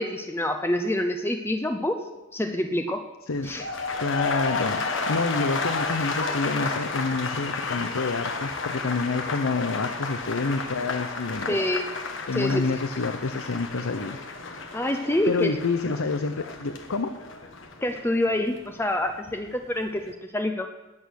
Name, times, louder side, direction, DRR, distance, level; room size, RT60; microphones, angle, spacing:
voice 1, 0.0-3.0 3.4-3.7 11.5-11.9 12.3-12.8 14.7-15.5 17.8-20.7, left 1 dB, 10° left, 6 dB, 0.7 m, -27 dB
voice 2, 3.3-3.7 4.0-11.6 12.3-14.2 15.3-17.1, left 3 dB, 85° left, 9 dB, 0.7 m, -28 dB
sound 1, 3.3-19.4 19.7-20.1, left 4 dB, 60° left, 1.5 m, -32 dB
19.5 x 8.4 x 6.4 m, 1.1 s
head